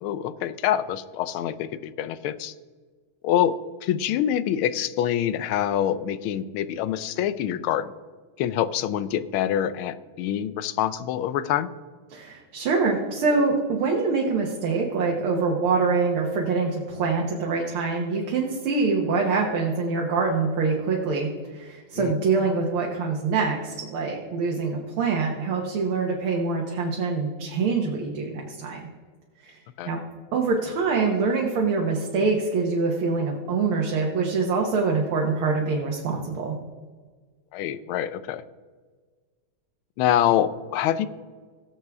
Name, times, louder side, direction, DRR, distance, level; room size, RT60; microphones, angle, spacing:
voice 1, 0.0-2.5 3.2-7.9 8.4-11.7 21.9-22.2 29.8-29.9 37.5-38.4 40.0-41.1, left 10 dB, 85° left, 15 dB, 1.5 m, -25 dB
voice 2, 12.1-28.9 29.4-30.0 30.3-36.6, right 4 dB, 90° right, 0 dB, 2.1 m, -25 dB
18.5 x 7.4 x 3.6 m, 1.5 s
omnidirectional pair, 2.3 m